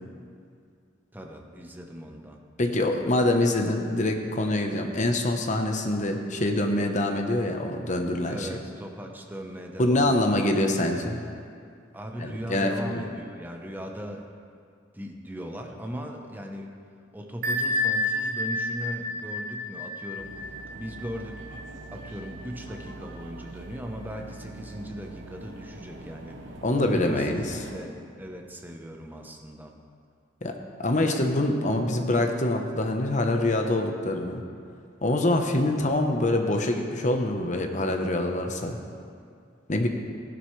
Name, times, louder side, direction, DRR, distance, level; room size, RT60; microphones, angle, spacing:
voice 1, 1.1-2.4 8.3-10.5 11.9-14.3 14.9-16.7 17.1-20.3 20.7-29.8, equal, 10° right, 2 dB, 0.9 m, -38 dB
voice 2, 2.6-8.5 9.8-11.2 12.2-13.0 26.6-27.6 30.4-30.5 30.8-34.4 35.0-38.8 39.7-39.9, left 1 dB, 40° left, 4 dB, 0.9 m, -25 dB
Bell, 17.4-22.9, left 2 dB, 50° right, 0.6 m, -30 dB
sound 1, 20.2-27.9, right 2 dB, 65° right, 1.0 m, -44 dB
15.0 x 11.0 x 3.2 m, 2.3 s
head